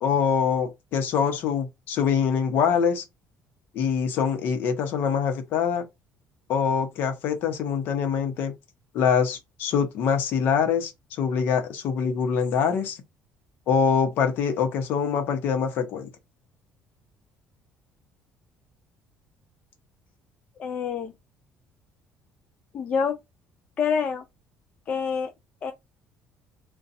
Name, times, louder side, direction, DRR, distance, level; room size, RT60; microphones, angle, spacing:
voice 1, 0.0-3.0 3.7-5.9 6.5-8.5 8.9-10.9 11.2-13.0 13.7-16.1, left 6 dB, 60° left, 0.8 m, -24 dB
voice 2, 20.6-21.1 22.7-23.2 23.8-24.2 24.9-25.3 25.6-25.7, left 6 dB, 35° left, 0.3 m, -26 dB
2.6 x 2.3 x 3.9 m
cardioid pair, 170°, 4 cm